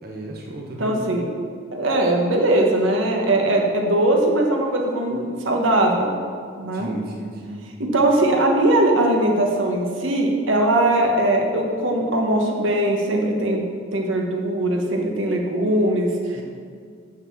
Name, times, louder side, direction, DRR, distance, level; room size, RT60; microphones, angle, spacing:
voice 1, 0.0-1.0 6.7-7.6 16.3-16.4, right 1 dB, 50° right, -1 dB, 1.0 m, -34 dB
voice 2, 0.8-1.3 1.7-6.1 6.6-6.9 7.9-16.1, right 1 dB, 85° right, 1 dB, 1.3 m, -20 dB
6.6 x 6.6 x 7.2 m, 2.1 s
head